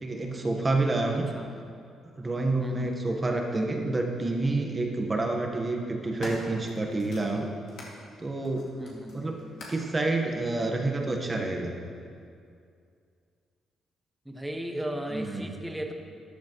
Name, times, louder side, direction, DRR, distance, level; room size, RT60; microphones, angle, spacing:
voice 1, 0.0-1.3 2.2-7.5 8.2-8.7 9.1-9.4 9.7-11.8 15.1-15.5, right 2 dB, 25° right, 2 dB, 1.2 m, -28 dB
voice 2, 2.6-3.0 8.7-9.3 14.2-15.9, right 1 dB, 5° right, 3 dB, 1.1 m, -36 dB
sound 1, 3.6-3.7 4.8-5.1 5.7-8.0 8.4-9.9 10.8-10.9, left 2 dB, 75° left, 2.2 m, -44 dB
13.0 x 10.5 x 3.1 m, 2.4 s
cardioid pair, 90°, 0 cm